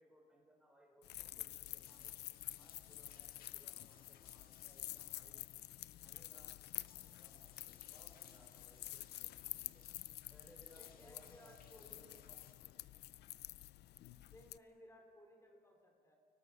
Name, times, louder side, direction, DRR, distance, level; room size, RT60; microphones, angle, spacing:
voice 1, 0.0-2.1 2.5-5.4 6.0-9.9 10.3-13.2 13.9-14.2, equal, 5° right, -1 dB, 4.1 m, -67 dB
sound 1, 1.0-14.6, left 15 dB, 85° left, 0.4 m, -49 dB
sound 2, 1.6-12.5, left 7 dB, 60° left, 2.1 m, -67 dB
voice 2, 10.8-12.0 14.3-16.1, left 1 dB, 15° left, 3 dB, 3.1 m, -61 dB
30.0 x 19.0 x 5.9 m, 2.3 s
wide cardioid pair, 175°, 17 cm